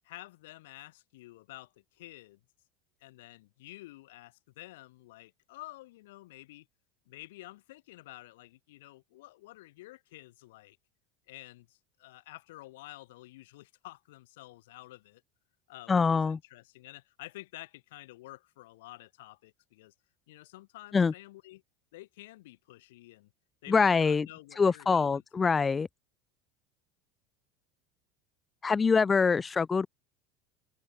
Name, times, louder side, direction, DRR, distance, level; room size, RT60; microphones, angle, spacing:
voice 1, 0.0-2.4 3.0-6.7 7.1-10.8 11.3-15.2 15.7-19.9 20.3-21.6 21.9-23.3 23.6-25.6, left 18 dB, 90° left, 7.2 m, -50 dB
voice 2, 15.9-16.4 20.9-21.1 23.7-24.3 24.6-25.9 28.6-29.9, left 5 dB, 15° left, 0.6 m, -24 dB
open air
supercardioid pair, 145°, 0 cm